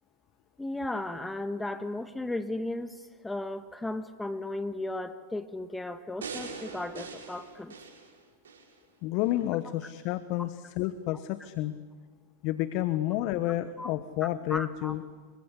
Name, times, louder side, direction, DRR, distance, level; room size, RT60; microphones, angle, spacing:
voice 1, 0.6-7.8 13.8-13.9 14.5-14.9, left 2 dB, 10° left, 10 dB, 1.6 m, -35 dB
sound 1, 6.2-8.7 9.2-9.3, right 5 dB, 80° right, 5.7 m, -42 dB
voice 2, 9.0-11.7 12.4-15.0, left 14 dB, 50° left, 13 dB, 1.2 m, -30 dB
27.5 x 23.5 x 8.5 m, 1.5 s
hypercardioid pair, 95°, 0 cm